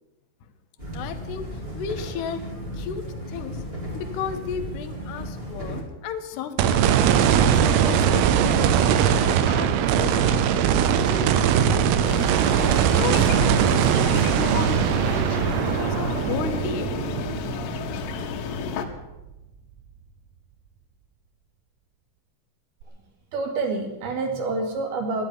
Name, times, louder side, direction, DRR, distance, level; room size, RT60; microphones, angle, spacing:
sound 1, 0.8-5.8, equal, 20° right, 1.7 m, -35 dB
voice 1, 0.9-2.4 2.7-3.6 3.9-6.9 7.3-12.0 12.9-16.9, left 8 dB, 70° left, 7 dB, 2.8 m, -34 dB
sound 2, 6.6-18.9 19.4-19.5 22.8-22.9, right 9 dB, 90° right, 3.6 m, -21 dB
sound 3, 12.0-18.9, left 6 dB, 90° left, 4.1 m, -32 dB
voice 2, 23.3-25.2, right 3 dB, 55° right, 3 dB, 3.7 m, -27 dB
13.0 x 11.0 x 9.6 m, 1.0 s
omnidirectional pair, 5.9 m